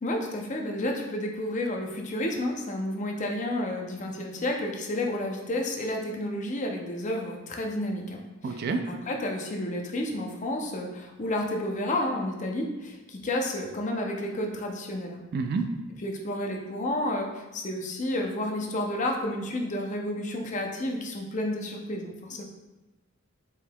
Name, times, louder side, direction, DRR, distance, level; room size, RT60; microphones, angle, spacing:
voice 1, 0.0-15.2 16.0-22.4, left 1 dB, 35° left, 2 dB, 0.5 m, -31 dB
voice 2, 8.4-8.8 15.3-15.7, right 4 dB, 50° right, 6 dB, 0.3 m, -28 dB
4.7 x 3.6 x 2.2 m, 1.1 s
head